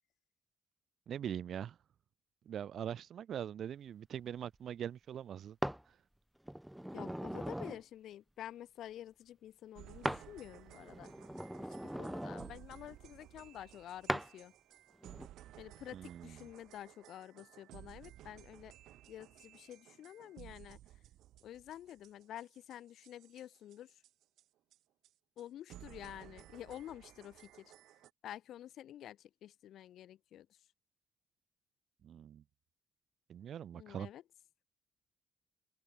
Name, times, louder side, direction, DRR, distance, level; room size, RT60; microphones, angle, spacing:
voice 1, 1.1-1.8 2.4-5.6 15.9-16.4 32.0-32.4 33.3-34.1, right 9 dB, 65° right, 1.3 m, -42 dB
sound 1, 5.6-5.8 6.5-7.8 10.0-10.3 10.7-12.5 14.1-14.3 15.0-15.3, equal, 5° right, 0.6 m, -39 dB
voice 2, 6.9-11.1 11.8-14.5 15.6-18.7 19.1-20.8 21.4-24.0 25.4-27.7 28.2-30.6 33.7-34.2, left 11 dB, 75° left, 1.9 m, -49 dB
sound 2, 9.7-24.4 24.7-24.8 25.0-25.1 25.4-25.5 25.7-28.1, right 13 dB, 85° right, 7.0 m, -57 dB
open air
cardioid pair, 90°, 0 cm